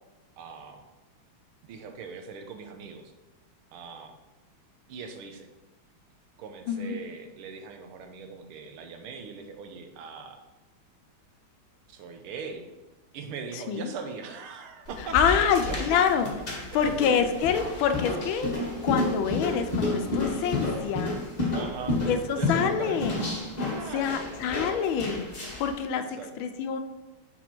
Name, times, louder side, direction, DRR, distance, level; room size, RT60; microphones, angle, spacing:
voice 1, 0.4-0.8 1.6-3.1 3.7-4.1 4.9-5.5 6.4-10.4 11.9-12.7 13.1-15.2 15.6-16.0 16.7-17.2 21.5-22.0 22.3-23.0 23.7-24.2 25.9-26.3, right 5 dB, 85° right, 5 dB, 1.7 m, -40 dB
sound 1, 14.8-25.8, left 2 dB, 30° left, 0.8 m, -31 dB
voice 2, 15.1-18.5 18.8-21.2 22.1-23.3 23.9-25.3 25.6-26.0 26.4-26.8, left 7 dB, 75° left, 8 dB, 1.3 m, -26 dB
6.0 x 4.2 x 4.4 m, 1.1 s
omnidirectional pair, 2.3 m